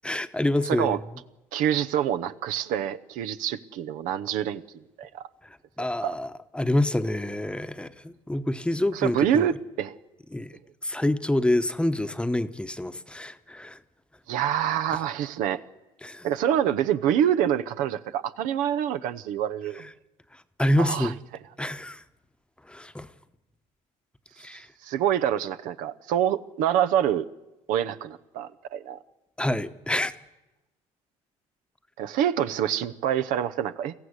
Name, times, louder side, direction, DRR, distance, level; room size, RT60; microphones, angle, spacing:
voice 1, 0.0-1.0 5.8-9.5 10.3-13.8 16.0-16.3 20.3-21.1 21.6-22.0 22.6-23.1 24.4-24.7 29.4-30.1, left 1 dB, 5° left, 1.0 m, -27 dB
voice 2, 0.6-1.0 1.5-4.6 5.0-5.3 5.8-6.2 8.9-10.0 14.3-15.6 16.2-19.9 20.8-21.1 24.5-27.3 27.7-29.0 32.0-33.9, right 10 dB, 80° right, 0.9 m, -26 dB
21.5 x 14.5 x 9.8 m
supercardioid pair, 85°, 14 cm